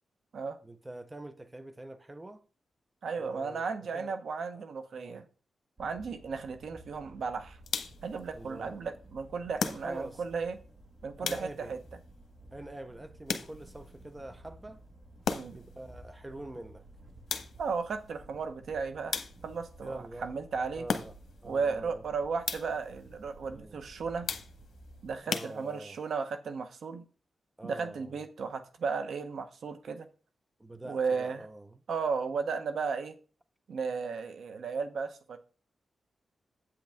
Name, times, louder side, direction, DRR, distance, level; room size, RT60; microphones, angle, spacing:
voice 1, 0.6-2.4 3.2-4.1 4.5-4.6 4.9-5.2 8.3-8.8 9.8-10.2 11.2-11.8 12.5-14.8 15.5-16.9 19.8-20.3 20.7-21.1 21.4-22.0 23.4-23.8 25.2-26.0 27.6-28.3 30.6-31.8, right 1 dB, 15° right, 0.7 m, -45 dB
voice 2, 3.0-5.2 5.8-7.6 8.0-10.6 11.0-11.8 15.3-15.6 17.6-19.1 19.4-20.8 21.4-24.3 25.0-27.1 27.6-30.1 30.8-31.4 31.9-33.2 33.7-35.4, right 5 dB, 75° right, 0.9 m, -34 dB
sound 1, 5.8-25.2, right 1 dB, 35° right, 1.5 m, -54 dB
sound 2, 7.7-8.2 9.6-10.2 11.2-11.8 13.3-13.9 15.2-15.8 17.3-17.8 19.1-19.7 20.9-21.4 22.4-22.9 24.3-24.8 25.3-26.0, left 6 dB, 80° left, 0.9 m, -36 dB
8.4 x 7.8 x 3.6 m
wide cardioid pair, 120°, 0 cm